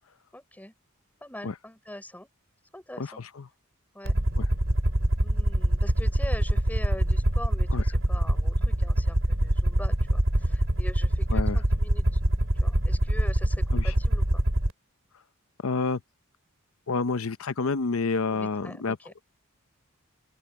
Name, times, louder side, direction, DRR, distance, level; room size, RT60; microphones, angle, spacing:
voice 1, 0.3-0.7 1.2-2.3 2.7-3.2 3.9-4.1 5.2-12.2 12.6-14.4 18.3-19.1, left 1 dB, 10° left, 6.0 m, -43 dB
voice 2, 3.0-3.5 4.4-4.5 7.7-7.8 11.3-11.6 13.7-13.9 15.6-16.0 16.9-19.0, left 4 dB, 80° left, 0.7 m, -29 dB
Aircraft, 4.1-14.7, right 1 dB, 65° right, 2.9 m, -24 dB
open air
head